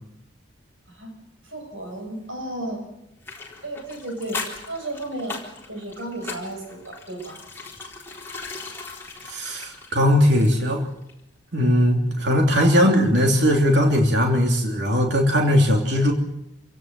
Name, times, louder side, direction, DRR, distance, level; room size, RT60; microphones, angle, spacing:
voice 1, 1.4-2.8 3.6-4.4 4.7-5.4 5.7-7.4, right 1 dB, 80° right, 3 dB, 7.4 m, -33 dB
sound 1, 3.2-10.8 11.1-11.2, left 4 dB, 10° left, 3.9 m, -38 dB
voice 2, 9.2-10.9 11.5-16.1, equal, 60° right, 1 dB, 3.2 m, -19 dB
26.5 x 17.0 x 7.7 m, 0.84 s
head